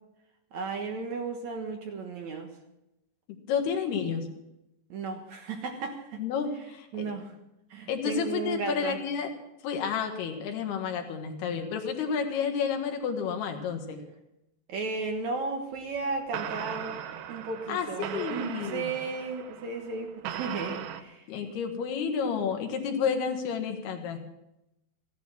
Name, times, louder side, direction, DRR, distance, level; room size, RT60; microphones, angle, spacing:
voice 1, 0.5-2.5 4.9-6.2 6.9-7.3 7.7-9.0 14.7-17.0 17.3-21.3, right 4 dB, 60° right, 4 dB, 2.0 m, -34 dB
voice 2, 3.5-4.3 6.2-7.1 7.9-9.3 9.6-14.0 17.7-18.9 21.3-24.2, left 6 dB, 75° left, 4 dB, 3.6 m, -30 dB
sound 1, 15.8-16.0 16.3-21.0, right 10 dB, 80° right, 3.0 m, -38 dB
16.5 x 11.5 x 6.1 m, 0.89 s
omnidirectional pair, 4.8 m